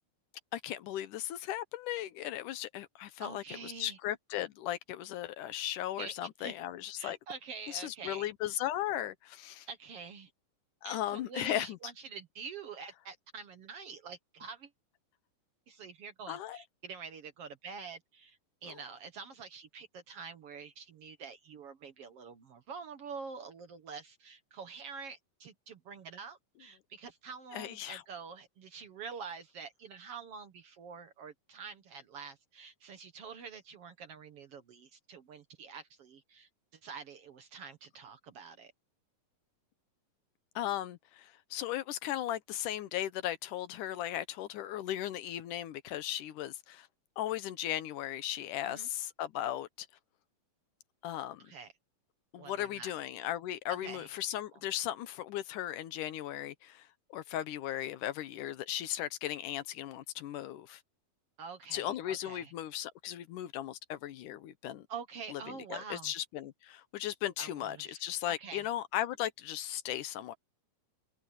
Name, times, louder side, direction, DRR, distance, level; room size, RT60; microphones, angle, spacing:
voice 1, 0.5-7.2 7.7-9.7 10.8-11.8 16.3-16.6 18.7-18.8 27.5-28.0 40.6-46.9 47.2-49.9 51.0-51.5 52.3-60.8 61.7-64.9 65.3-70.4, left 12 dB, 75° left, 2.4 m, -37 dB
voice 2, 3.2-4.0 6.0-6.6 7.0-8.5 9.7-10.3 10.8-14.7 15.7-36.5 36.8-38.7 48.6-48.9 51.4-51.7 52.4-52.9 53.8-54.1 61.4-62.5 64.9-66.1 67.4-68.7, right 5 dB, 55° right, 1.9 m, -46 dB
omnidirectional pair, 3.8 m